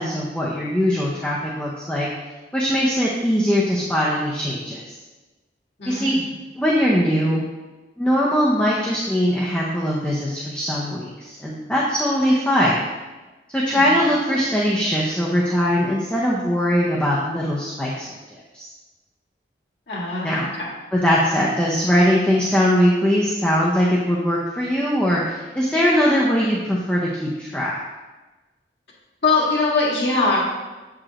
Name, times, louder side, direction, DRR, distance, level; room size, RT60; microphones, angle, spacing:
voice 1, 0.0-2.1 2.5-4.8 5.9-6.2 6.6-7.4 8.0-12.8 13.5-18.1 18.5-18.7 20.2-20.5 20.9-27.7, equal, 5° left, -5 dB, 0.6 m, -21 dB
voice 2, 5.8-6.3 13.9-14.0 19.9-20.7 29.2-30.4, left 3 dB, 75° left, -6 dB, 1.8 m, -22 dB
7.3 x 4.8 x 2.9 m, 1.2 s
head